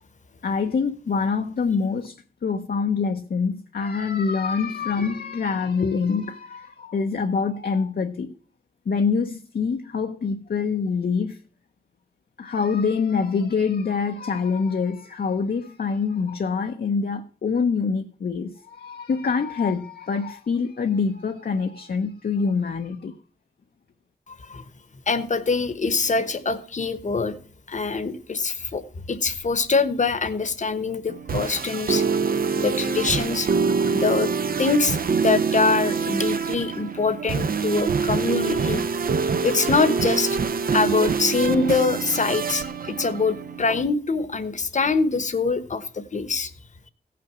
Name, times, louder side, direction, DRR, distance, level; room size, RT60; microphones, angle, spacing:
voice 1, 0.4-8.3 8.9-11.4 12.4-23.1, left 5 dB, 70° left, 0.8 m, -25 dB
voice 2, 25.1-27.4 27.7-28.8 29.1-32.0 32.6-33.5 33.9-34.3 34.6-38.8 39.4-40.4 40.7-46.5, left 4 dB, 50° left, 1.1 m, -24 dB
sound 1, 31.1-43.9, right 5 dB, 65° right, 0.7 m, -25 dB
16.5 x 6.0 x 6.0 m
wide cardioid pair, 110°, 16 cm